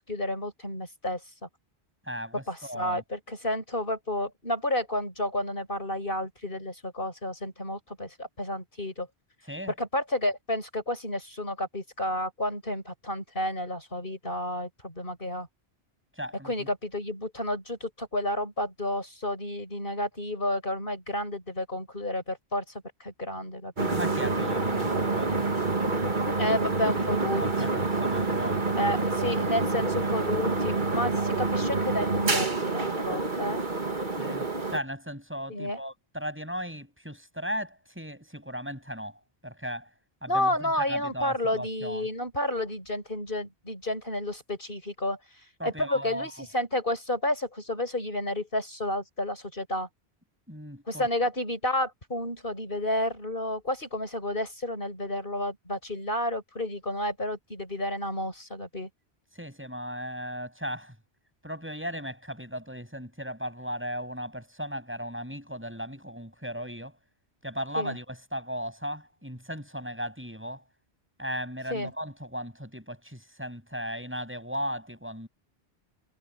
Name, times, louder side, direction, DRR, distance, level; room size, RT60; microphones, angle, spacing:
voice 1, 0.1-1.5 2.5-9.1 9.8-15.5 16.4-23.9 26.4-27.4 28.8-32.5 32.7-33.6 35.5-35.8 40.3-45.2 45.6-49.9 50.9-58.9 67.7-68.0 71.7-71.9, left 1 dB, 55° left, 6.3 m, -31 dB
voice 2, 2.1-3.0 9.5-9.7 16.2-16.7 23.9-25.5 27.4-28.7 34.2-39.9 40.2-42.1 45.6-46.3 50.5-51.1 59.3-60.9 61.4-67.0 67.4-70.6 71.2-75.3, equal, 10° right, 7.3 m, -36 dB
sound 1, 23.8-34.8, right 3 dB, 50° right, 2.2 m, -27 dB
omnidirectional pair, 1.1 m